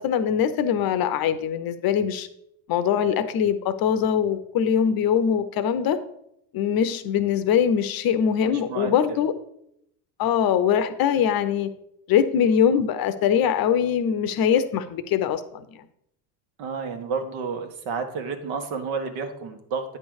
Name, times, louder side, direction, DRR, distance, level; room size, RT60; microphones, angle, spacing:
voice 1, 0.0-2.3 2.7-6.0 6.5-9.3 10.2-11.7 12.1-15.8, left 8 dB, 45° left, 11 dB, 0.7 m, -22 dB
voice 2, 8.4-9.2 16.6-20.0, right 5 dB, 65° right, 6 dB, 1.4 m, -31 dB
9.1 x 3.3 x 6.3 m, 0.77 s
supercardioid pair, 100°, 50 cm